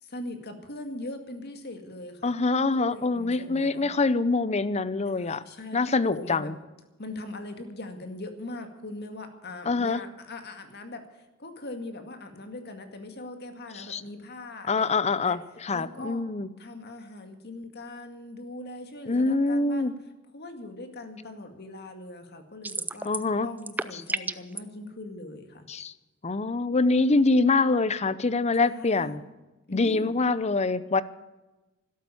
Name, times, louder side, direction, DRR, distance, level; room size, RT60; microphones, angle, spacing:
voice 1, 0.0-2.3 2.7-3.9 5.1-5.8 6.1-6.5 7.0-11.0 11.4-15.4 15.7-16.2 16.6-19.9 20.3-23.1 23.4-25.7 28.6-29.2 29.7-30.2, left 2 dB, 50° left, 6 dB, 2.1 m, -41 dB
voice 2, 2.2-5.4 5.7-6.5 9.7-10.0 13.8-14.0 14.7-16.5 19.1-19.9 23.0-23.5 25.7-25.9 26.2-29.2 29.7-31.0, left 3 dB, 30° left, 16 dB, 0.6 m, -25 dB
sound 1, 22.6-23.3 23.6-24.6, right 3 dB, 10° right, 0.4 m, -31 dB
13.0 x 12.5 x 8.5 m, 1.1 s
head